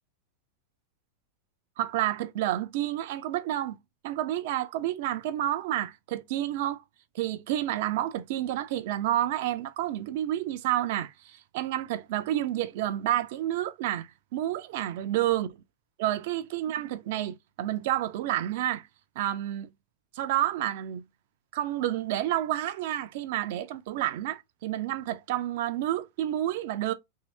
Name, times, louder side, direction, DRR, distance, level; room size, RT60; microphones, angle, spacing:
voice 1, 1.8-3.8 4.0-6.8 7.1-15.5 16.0-18.9 19.2-19.7 20.1-21.0 21.5-26.9, right 13 dB, 50° right, 0.4 m, -29 dB
2.7 x 2.6 x 3.2 m
figure-of-eight pair, 90°, 0 cm